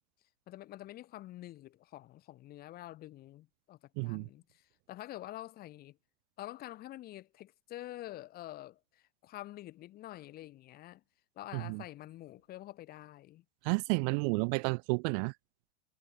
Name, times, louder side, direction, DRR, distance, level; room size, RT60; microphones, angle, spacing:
voice 1, 0.5-6.0 6.4-11.0 11.4-13.4, left 15 dB, 30° left, 2.4 m, -47 dB
voice 2, 4.0-4.3 11.5-11.8 13.6-15.3, right 39 dB, 40° right, 1.1 m, -31 dB
supercardioid pair, 155°, 32 cm